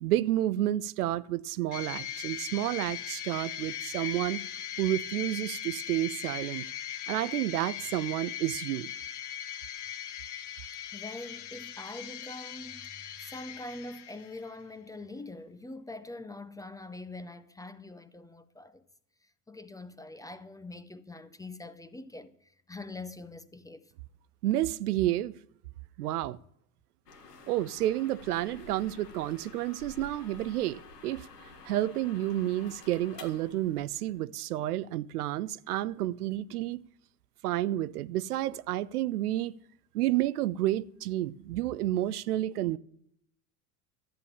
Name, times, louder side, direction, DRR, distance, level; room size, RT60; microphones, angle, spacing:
voice 1, 0.0-4.4 4.8-6.7 7.1-8.9 24.4-25.3 26.0-26.4 27.5-31.3 31.6-36.8 37.4-39.5 39.9-42.8, right 14 dB, 70° right, 0.6 m, -30 dB
sound 1, 1.7-14.5, left 10 dB, 40° left, 1.2 m, -39 dB
voice 2, 10.9-18.8 19.5-23.9, left 2 dB, 10° left, 0.6 m, -44 dB
sound 2, 27.1-34.2, left 4 dB, 85° left, 1.8 m, -50 dB
13.0 x 9.0 x 7.1 m
hypercardioid pair, 80°, 47 cm